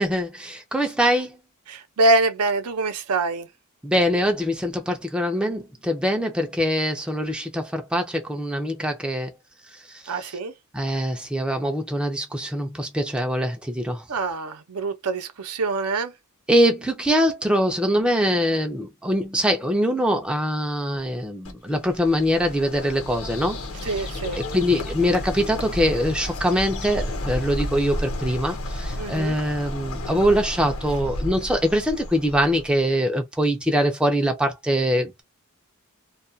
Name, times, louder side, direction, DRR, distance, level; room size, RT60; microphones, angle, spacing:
voice 1, 0.0-1.4 3.8-9.3 9.9-10.4 10.7-14.0 16.5-24.1 24.4-35.2, equal, 5° right, 0.4 m, -23 dB
voice 2, 1.7-3.5 10.1-10.5 14.1-16.1 23.8-24.4 29.0-29.3, right 2 dB, 85° right, 0.6 m, -24 dB
Bird, 21.4-32.9, left 1 dB, 65° left, 0.9 m, -32 dB
2.3 x 2.2 x 2.5 m
head